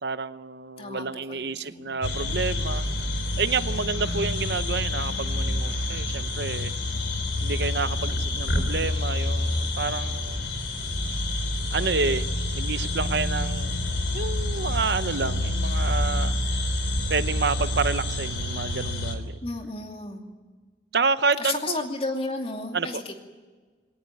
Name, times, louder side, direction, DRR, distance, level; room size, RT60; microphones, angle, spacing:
voice 1, 0.0-2.9 3.4-6.7 7.4-10.5 11.7-12.3 12.5-13.7 14.1-16.4 17.1-19.4 20.9-21.9 22.7-22.9, right 4 dB, 65° right, 12 dB, 0.8 m, -29 dB
voice 2, 0.8-2.0 19.4-20.2 21.4-23.2, left 2 dB, 30° left, 3 dB, 2.6 m, -33 dB
sound 1, 2.0-19.2, left 1 dB, 80° left, 3.3 m, -28 dB
20.5 x 18.5 x 9.8 m, 1.4 s
head